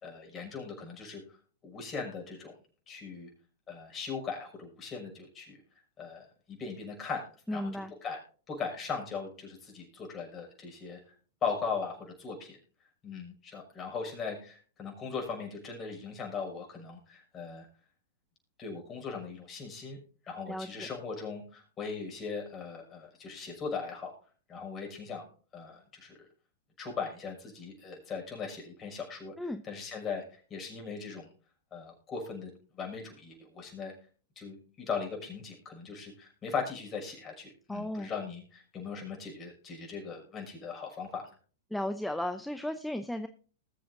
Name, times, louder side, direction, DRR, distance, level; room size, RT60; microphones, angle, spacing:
voice 1, 0.0-1.4 1.6-2.5 2.9-3.3 3.7-5.6 6.0-11.0 11.4-12.6 13.0-17.7 18.6-20.0 20.2-24.1 24.5-25.2 25.5-26.2 26.8-31.3 31.7-32.5 32.8-33.9 34.4-41.3, left 5 dB, 25° left, 1 dB, 6.2 m, -39 dB
voice 2, 7.5-7.9 20.5-20.9 29.4-29.6 37.7-38.1 41.7-43.3, left 1 dB, 5° left, 9 dB, 0.7 m, -35 dB
20.5 x 7.8 x 2.6 m, 0.39 s
hypercardioid pair, 110°, 0 cm